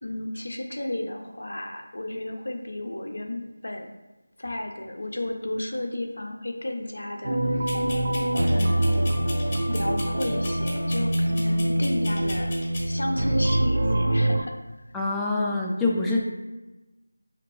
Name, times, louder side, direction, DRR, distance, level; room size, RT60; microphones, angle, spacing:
voice 1, 0.0-3.9 4.4-7.7 8.5-9.1 9.7-12.6 12.9-14.5, left 1 dB, 70° left, 3 dB, 0.5 m, -33 dB
sound 1, 7.2-14.4, right 1 dB, 55° right, 0.6 m, -24 dB
sound 2, 7.7-12.9, left 1 dB, 30° left, 0.8 m, -38 dB
voice 2, 14.9-16.2, left 2 dB, 5° left, -4 dB, 0.3 m, -25 dB
5.1 x 2.8 x 3.0 m, 1.1 s
figure-of-eight pair, 170°, 0 cm